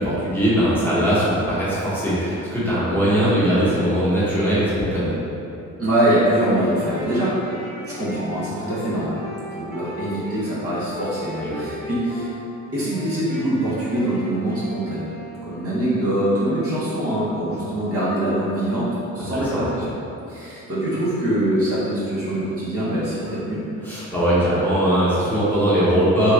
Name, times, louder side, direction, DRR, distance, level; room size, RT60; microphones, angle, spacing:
voice 1, 0.0-5.1 11.4-11.7 19.3-19.6 23.8-26.3, equal, 5° left, -11 dB, 1.1 m, -20 dB
voice 2, 5.8-7.3 7.8-9.2 9.5-12.3 12.7-15.1 15.4-19.8 20.3-23.6, right 1 dB, 50° right, -10 dB, 1.1 m, -23 dB
Wind instrument woodwind instrument, 6.3-10.4 10.9-12.3 12.7-16.0, equal, 30° right, 1.3 m, -37 dB
3.0 x 2.4 x 3.4 m, 2.8 s
cardioid pair, 90°, 30 cm